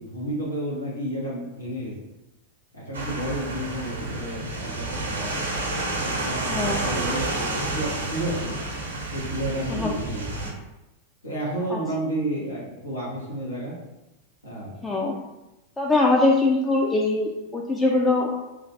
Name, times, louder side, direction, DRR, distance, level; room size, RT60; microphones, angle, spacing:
voice 1, 0.0-1.9 2.7-5.4 6.0-8.6 9.1-10.3 11.2-13.7 14.4-15.0, right 1 dB, 80° left, -7 dB, 1.1 m, -31 dB
sound 1, 2.9-10.5, right 2 dB, 70° right, 0.8 m, -30 dB
voice 2, 6.5-7.0 9.7-9.9 11.7-11.8 14.8-15.2 15.8-18.4, left 2 dB, 10° left, -2 dB, 0.4 m, -22 dB
3.1 x 2.4 x 3.7 m, 0.97 s
figure-of-eight pair, 90°, 0 cm